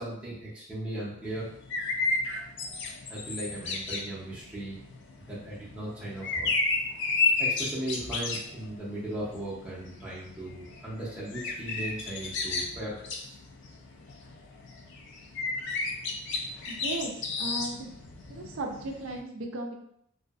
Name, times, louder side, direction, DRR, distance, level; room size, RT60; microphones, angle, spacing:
voice 1, 0.0-1.5 3.1-4.8 5.3-6.5 7.4-13.4, right 1 dB, 5° right, -8 dB, 0.5 m, -37 dB
sound 1, 1.2-19.2, left 3 dB, 55° left, 0.3 m, -33 dB
voice 2, 16.7-17.9 18.3-19.7, right 2 dB, 60° right, 2 dB, 0.4 m, -36 dB
2.6 x 2.4 x 2.3 m, 0.73 s
head